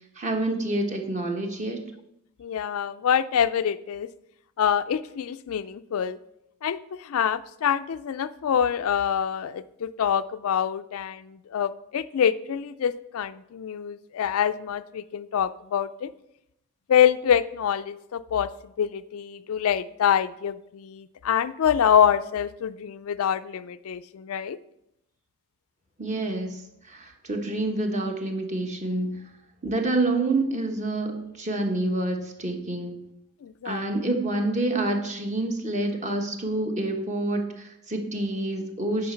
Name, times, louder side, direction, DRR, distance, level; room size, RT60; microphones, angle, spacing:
voice 1, 0.2-1.8 26.0-26.6 26.9-29.1 29.6-32.9 33.6-39.1, right 2 dB, 30° right, 3 dB, 1.2 m, -27 dB
voice 2, 2.4-4.1 4.6-6.2 6.6-16.1 16.9-24.6 33.4-33.8, left 8 dB, 70° left, 14 dB, 0.4 m, -25 dB
9.4 x 5.0 x 5.7 m, 0.81 s
head